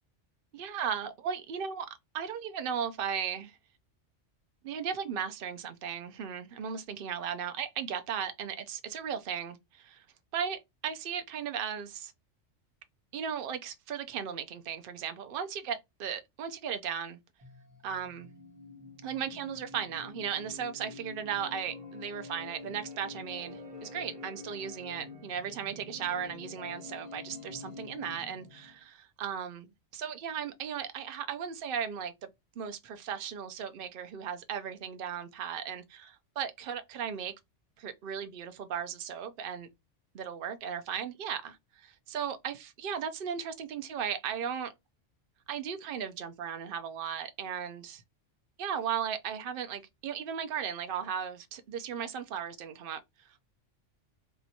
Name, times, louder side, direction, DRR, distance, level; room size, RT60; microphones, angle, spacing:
voice 1, 0.5-1.9 2.1-3.6 4.6-10.0 10.3-12.1 13.1-17.2 17.8-18.3 19.0-29.7 29.9-32.1 32.6-37.3 37.8-39.7 40.1-41.6 41.8-44.7 45.5-48.0 48.6-53.0, right 8 dB, 55° right, 0.7 m, -36 dB
sound 1, 17.4-28.8, left 3 dB, 25° right, 1.1 m, -47 dB
3.5 x 2.9 x 2.7 m
omnidirectional pair, 1.3 m